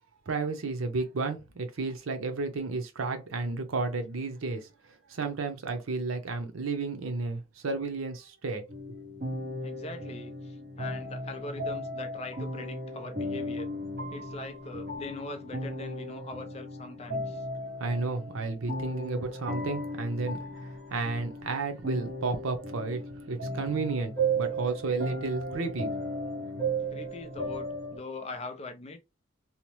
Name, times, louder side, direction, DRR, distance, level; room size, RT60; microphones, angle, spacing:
voice 1, 0.3-4.7 5.1-8.6 17.8-23.0 23.3-25.9, right 3 dB, 85° right, 0.6 m, -32 dB
sound 1, 8.7-28.0, right 1 dB, 50° right, 1.0 m, -35 dB
voice 2, 9.6-13.7 14.1-17.5 26.9-29.0, left 2 dB, 30° left, 0.4 m, -41 dB
2.8 x 2.0 x 3.0 m
head